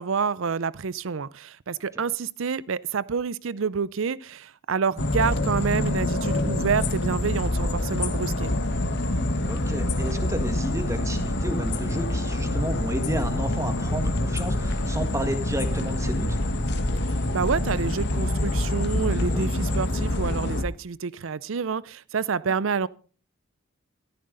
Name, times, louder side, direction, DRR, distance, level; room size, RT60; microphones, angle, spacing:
voice 1, 0.0-8.5 17.3-22.9, right 5 dB, 65° right, 0.5 m, -28 dB
sound 1, 5.0-20.6, left 1 dB, 55° left, 1.3 m, -26 dB
voice 2, 9.5-16.4 19.2-19.4, right 1 dB, 15° right, 1.7 m, -32 dB
14.0 x 14.0 x 3.9 m
head